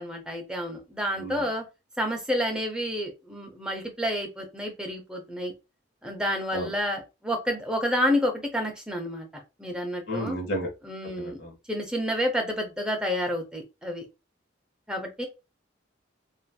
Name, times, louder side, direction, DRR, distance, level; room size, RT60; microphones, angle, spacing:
voice 1, 0.0-1.6 2.0-5.5 6.0-9.3 9.6-10.4 10.8-11.4 11.7-14.0 14.9-15.2, equal, 5° right, 2 dB, 0.6 m, -29 dB
voice 2, 10.1-10.7 11.2-11.5, equal, 55° left, 1 dB, 1.1 m, -31 dB
3.0 x 2.4 x 2.2 m, 0.26 s
head